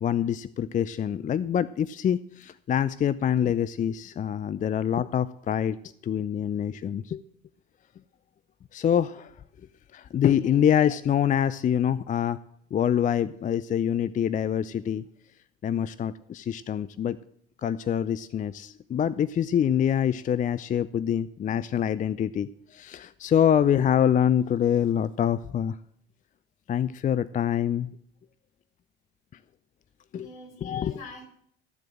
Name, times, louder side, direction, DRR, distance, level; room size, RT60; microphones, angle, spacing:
voice 1, 0.0-5.8 6.0-7.2 8.7-9.3 9.9-12.4 12.7-15.0 15.6-17.2 17.6-25.8 26.7-27.9 30.1-30.3 30.6-31.0, left 9 dB, 25° left, 17 dB, 0.5 m, -25 dB
voice 2, 10.3-10.6 30.1-31.2, left 2 dB, 65° left, 1 dB, 4.8 m, -46 dB
13.5 x 7.6 x 7.6 m, 0.68 s
figure-of-eight pair, 60°, 30 cm